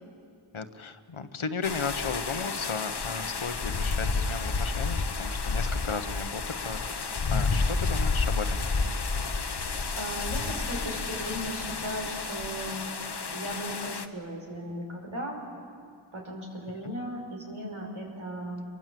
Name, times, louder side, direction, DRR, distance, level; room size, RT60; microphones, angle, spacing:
voice 1, 0.5-8.6, left 5 dB, 75° left, 9 dB, 1.3 m, -35 dB
sound 1, 1.6-14.1, left 4 dB, 55° left, 1.2 m, -30 dB
voice 2, 10.0-12.8 13.3-15.4 16.1-18.7, equal, 85° right, 0 dB, 5.4 m, -37 dB
28.5 x 23.5 x 7.7 m, 2.4 s
wide cardioid pair, 65°, 49 cm